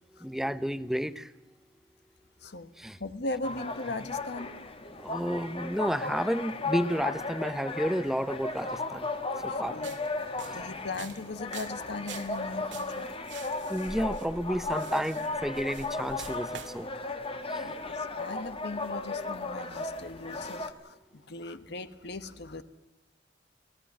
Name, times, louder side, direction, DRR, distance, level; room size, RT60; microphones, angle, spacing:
voice 1, 0.2-1.3 2.8-3.0 5.0-9.0 9.4-9.8 13.7-16.9, equal, ahead, 14 dB, 0.8 m, -31 dB
voice 2, 3.0-4.5 9.5-9.9 10.4-13.1 17.6-22.6, left 2 dB, 60° left, 11 dB, 1.2 m, -39 dB
sound 1, 3.4-20.7, left 3 dB, 30° left, 1.7 m, -36 dB
sound 2, 9.7-16.8, right 5 dB, 70° right, 2.2 m, -46 dB
24.5 x 18.0 x 7.4 m, 1.0 s
head